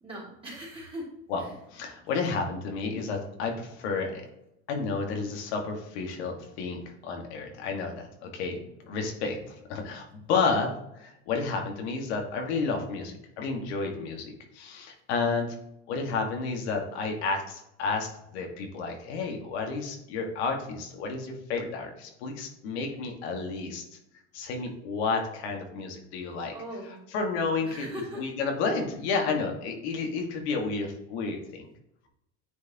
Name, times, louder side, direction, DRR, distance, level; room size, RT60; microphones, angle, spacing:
voice 1, 0.0-1.1 1.4-1.5 26.5-27.0 27.6-28.3, equal, 15° right, -5 dB, 2.5 m, -39 dB
voice 2, 1.7-4.3 4.7-15.6 15.9-23.8 24.3-26.5 26.8-27.9 28.2-31.7, left 4 dB, 85° left, 2 dB, 1.6 m, -31 dB
9.2 x 4.8 x 2.8 m, 0.81 s
supercardioid pair, 130°, 32 cm